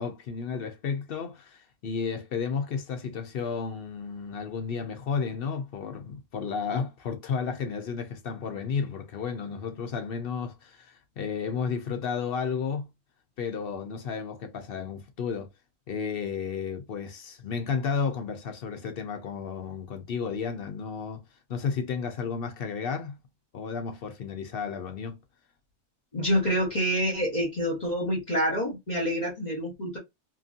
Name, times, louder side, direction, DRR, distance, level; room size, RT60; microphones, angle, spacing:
voice 1, 0.0-12.9 13.4-15.5 15.9-21.2 21.5-23.2 23.5-25.2, left 6 dB, 60° left, 0.6 m, -32 dB
voice 2, 26.1-30.0, equal, 35° left, 1.0 m, -27 dB
2.9 x 2.6 x 2.4 m
omnidirectional pair, 1.6 m